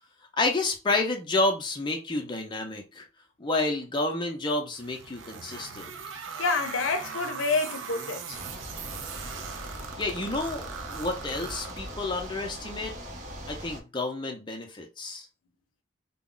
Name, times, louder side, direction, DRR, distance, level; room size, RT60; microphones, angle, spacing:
voice 1, 0.4-3.0 3.4-5.9 10.0-12.9 13.5-15.3, left 2 dB, 25° left, 0.5 m, -30 dB
sound 1, 4.7-12.3, right 6 dB, 75° right, 0.4 m, -40 dB
voice 2, 6.4-8.4, left 3 dB, 85° left, 0.5 m, -28 dB
sound 2, 8.3-13.8, equal, 40° right, 0.7 m, -40 dB
2.3 x 2.0 x 3.7 m
head